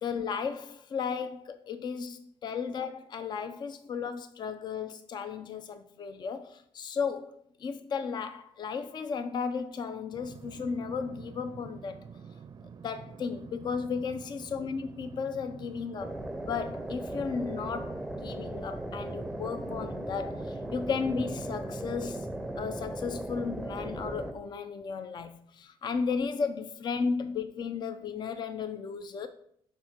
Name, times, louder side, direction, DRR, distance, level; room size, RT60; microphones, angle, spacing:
voice 1, 0.0-12.0 12.8-16.1 16.5-18.0 18.2-22.3 22.6-29.3, left 5 dB, 45° left, 0.5 m, -34 dB
sound 1, 10.1-22.8, right 6 dB, 40° right, 0.5 m, -48 dB
sound 2, 16.0-24.3, right 1 dB, ahead, 0.7 m, -37 dB
7.5 x 3.5 x 5.8 m
cardioid pair, 110°, 11 cm